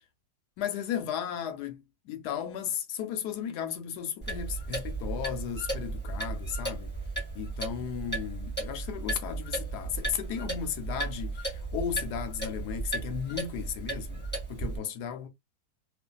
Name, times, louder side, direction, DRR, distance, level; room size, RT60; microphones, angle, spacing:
voice 1, 0.6-6.9 7.3-14.2 14.5-15.3, left 8 dB, 80° left, 1.2 m, -35 dB
Clock, 4.2-14.8, right 3 dB, 5° left, 1.4 m, -35 dB
2.7 x 2.5 x 2.2 m
omnidirectional pair, 1.7 m